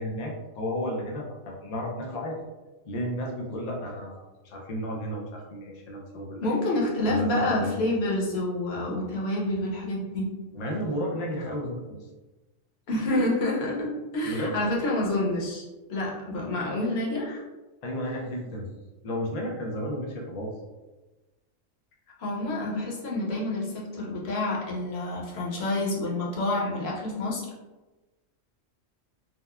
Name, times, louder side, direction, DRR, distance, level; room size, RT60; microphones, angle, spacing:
voice 1, 0.0-2.4 2.9-6.5 7.0-7.8 10.5-12.1 14.2-14.6 17.8-18.7 19.0-20.5, equal, 90° left, -1 dB, 0.3 m, -33 dB
voice 2, 6.4-10.3 12.9-15.6 15.9-17.4 22.2-27.5, left 1 dB, 60° left, -4 dB, 0.9 m, -28 dB
2.8 x 2.1 x 2.3 m, 1.1 s
omnidirectional pair, 1.3 m